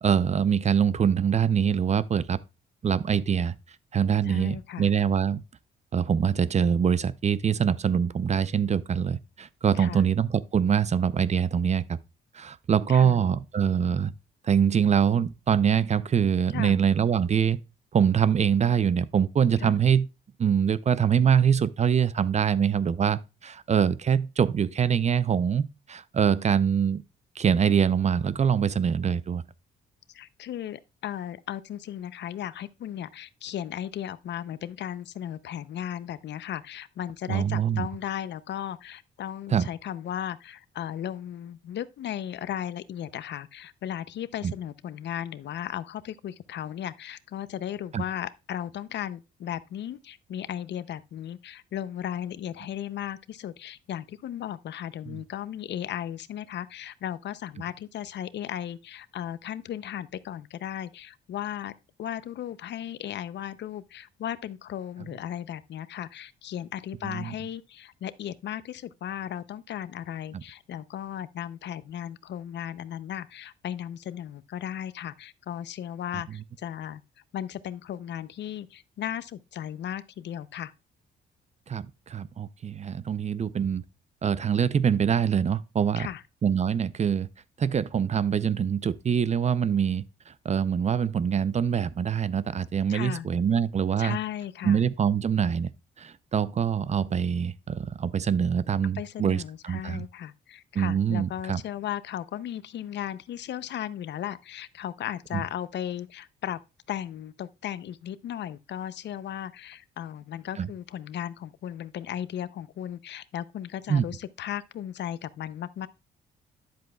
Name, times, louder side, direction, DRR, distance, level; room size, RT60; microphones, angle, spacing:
voice 1, 0.0-2.4 2.8-3.6 3.9-5.4 5.9-12.0 12.3-14.1 14.4-17.6 17.9-20.1 20.4-27.0 27.4-29.4 37.3-37.9 39.5-39.7 44.4-44.5 47.9-48.0 55.1-55.2 67.0-67.3 81.7-83.8 84.2-86.1 86.4-87.3 87.6-94.2 94.6-95.7 96.0-100.0 100.7-101.6 105.3-105.4 110.6-110.7 113.9-114.0, right 7 dB, 35° right, 0.5 m, -24 dB
voice 2, 4.3-4.9 9.7-10.1 12.9-13.2 16.5-16.8 19.6-19.8 30.1-61.7 62.0-77.0 77.3-80.7 86.0-86.2 92.9-93.3 94.0-94.8 98.9-106.6 106.9-115.9, left 10 dB, 60° left, 0.6 m, -36 dB
10.0 x 7.7 x 2.3 m
cardioid pair, 90°, 20 cm